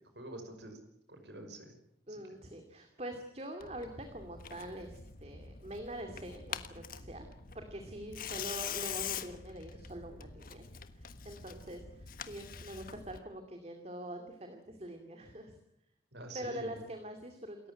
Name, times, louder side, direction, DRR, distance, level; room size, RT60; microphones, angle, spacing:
voice 1, 0.2-0.8 1.1-1.7 2.1-2.3 16.1-16.8, right 2 dB, 70° right, 6 dB, 5.7 m, -47 dB
voice 2, 2.1-7.3 7.5-10.6 10.9-15.6 16.3-17.7, right 1 dB, 35° right, 5 dB, 2.5 m, -44 dB
Tearing, 3.6-13.2, left 8 dB, 50° left, 1.4 m, -44 dB
28.0 x 14.5 x 9.8 m, 0.79 s
head